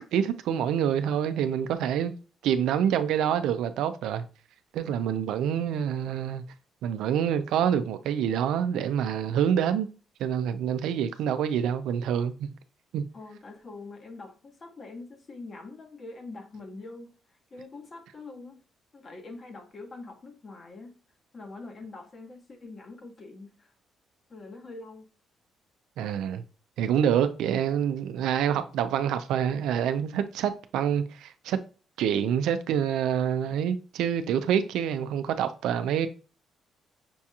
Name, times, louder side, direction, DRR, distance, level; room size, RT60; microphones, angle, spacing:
voice 1, 0.0-2.1 2.4-4.3 4.7-6.4 6.8-9.9 10.2-12.5 12.9-13.0 26.0-26.4 26.8-31.6 32.0-36.1, right 9 dB, 85° right, 0.4 m, -26 dB
voice 2, 13.1-17.1 17.5-18.6 18.9-21.0 21.3-23.7 24.3-25.1, left 3 dB, 40° left, 1.2 m, -44 dB
6.0 x 2.8 x 2.3 m
cardioid pair, 90°, 0 cm